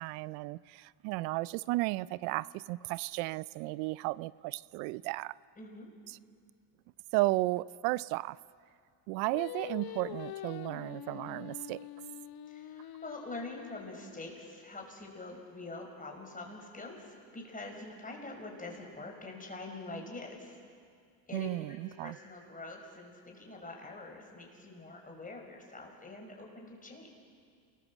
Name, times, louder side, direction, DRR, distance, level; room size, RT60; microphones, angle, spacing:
voice 1, 0.0-5.3 7.1-8.4 9.1-11.8 21.3-22.2, right 20 dB, 90° right, 20 dB, 0.6 m, -34 dB
voice 2, 5.6-5.9 12.5-20.6 21.3-27.1, left 2 dB, 15° left, 1 dB, 5.7 m, -45 dB
Singing, 9.3-14.6, left 11 dB, 45° left, 1.0 m, -45 dB
28.0 x 20.5 x 7.3 m, 2.2 s
supercardioid pair, 105°, 50 cm